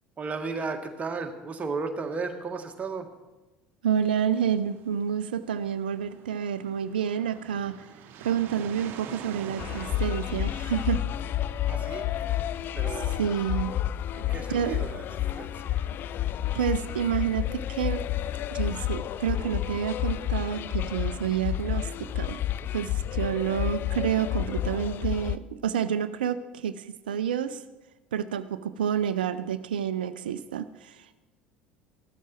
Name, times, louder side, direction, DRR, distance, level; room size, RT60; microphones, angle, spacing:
voice 1, 0.2-3.1 11.7-12.1 12.8-13.1 14.1-15.0 15.4-15.8, right 4 dB, 25° right, 5 dB, 1.7 m, -34 dB
voice 2, 3.8-7.9 8.2-11.0 13.2-13.7 14.5-14.9 16.5-18.0 18.5-22.4 22.7-27.6 28.1-31.2, right 8 dB, 70° right, 13 dB, 0.6 m, -29 dB
sound 1, 3.9-11.0, right 8 dB, 45° right, 1.2 m, -46 dB
sound 2, 9.6-25.4, left 12 dB, 40° left, 0.4 m, -30 dB
15.5 x 12.5 x 4.5 m, 1.1 s
figure-of-eight pair, 65°, 5 cm